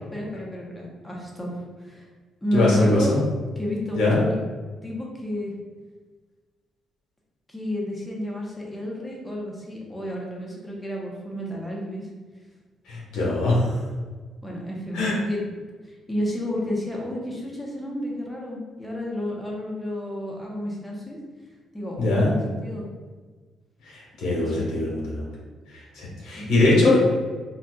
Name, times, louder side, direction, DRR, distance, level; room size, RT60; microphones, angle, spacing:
voice 1, 0.1-2.1 2.4-3.2 3.6-4.4 4.8-5.5 7.5-12.1 14.4-15.6 15.8-21.2 21.7-22.8 24.4-24.6 26.4-26.6, left 1 dB, 10° left, -3 dB, 0.9 m, -31 dB
voice 2, 2.5-3.2 3.9-4.2 12.9-13.6 14.9-15.2 22.0-22.3 23.9-25.2 26.0-27.0, left 2 dB, 85° left, -5 dB, 1.4 m, -21 dB
4.0 x 2.6 x 2.4 m, 1.4 s
cardioid pair, 90°, 0 cm